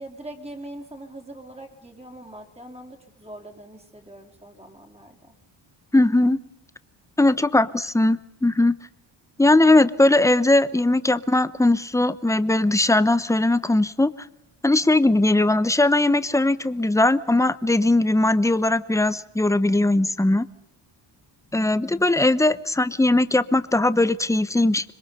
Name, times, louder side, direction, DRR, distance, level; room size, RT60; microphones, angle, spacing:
voice 1, 0.0-5.4, right 1 dB, 15° right, 3 dB, 4.1 m, -42 dB
voice 2, 5.9-6.4 7.2-8.7 9.4-14.1 14.6-20.5 21.5-24.9, left 2 dB, 5° left, 14 dB, 0.9 m, -19 dB
26.0 x 22.0 x 5.6 m, 0.83 s
cardioid pair, 100°, 47 cm